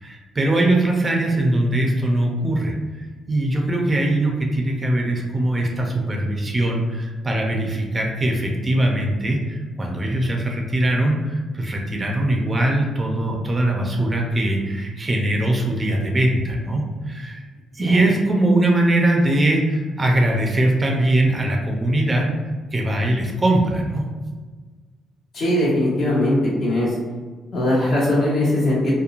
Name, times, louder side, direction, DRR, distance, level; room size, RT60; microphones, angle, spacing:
voice 1, 0.0-2.7 3.3-17.4 17.7-22.3 22.7-24.0, right 1 dB, 25° right, 0 dB, 0.5 m, -21 dB
voice 2, 25.3-26.9 27.5-28.9, left 1 dB, 60° left, -6 dB, 1.2 m, -20 dB
2.9 x 2.1 x 2.4 m, 1.4 s
cardioid pair, 90°, 0 cm